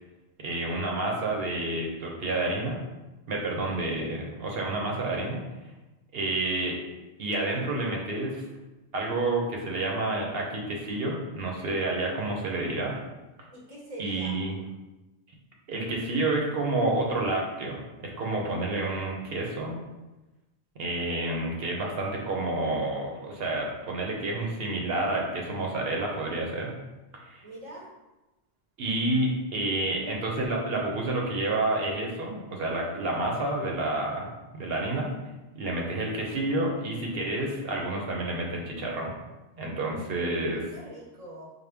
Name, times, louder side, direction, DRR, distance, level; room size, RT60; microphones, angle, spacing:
voice 1, 0.4-2.8 3.3-5.4 6.1-6.8 7.2-8.5 8.9-12.9 14.0-14.6 15.7-19.8 20.8-26.7 27.1-27.4 28.8-34.3 34.5-35.1 35.5-39.1 39.6-40.6, right 2 dB, 60° right, -1 dB, 1.0 m, -29 dB
voice 2, 13.5-14.4 27.4-27.9 40.2-41.5, right 1 dB, 35° right, -4 dB, 0.7 m, -44 dB
4.9 x 2.2 x 3.4 m, 1.1 s
omnidirectional pair, 1.2 m